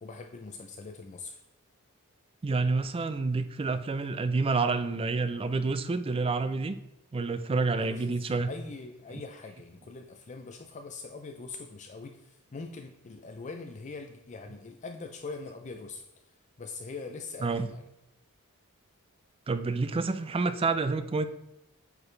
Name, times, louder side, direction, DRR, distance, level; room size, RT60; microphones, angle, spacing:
voice 1, 0.0-1.4 7.7-8.2 8.5-16.0 16.6-17.8, left 3 dB, 35° left, 5 dB, 0.5 m, -42 dB
voice 2, 2.4-6.8 7.1-8.5 9.1-9.2 17.4-17.7 19.5-21.3, right 3 dB, 25° right, 11 dB, 0.4 m, -28 dB
8.4 x 4.8 x 3.3 m, 0.92 s
head